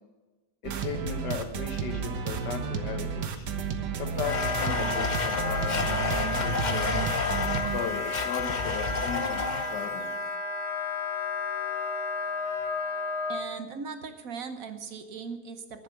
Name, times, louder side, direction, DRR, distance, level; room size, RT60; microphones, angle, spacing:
voice 1, 0.6-3.5 4.0-7.1 7.7-9.4 9.7-10.1, left 6 dB, 80° left, 7 dB, 1.8 m, -36 dB
sound 1, 0.6-7.8, right 6 dB, 75° right, 1.6 m, -32 dB
Wind instrument woodwind instrument, 4.2-13.4, left 3 dB, 65° left, 1.6 m, -32 dB
Domestic sounds home sounds, 4.3-10.0, left 4 dB, 45° left, 0.6 m, -31 dB
voice 2, 13.3-15.8, right 5 dB, 60° right, 8 dB, 1.3 m, -39 dB
11.0 x 10.0 x 6.9 m, 1.2 s
omnidirectional pair, 1.8 m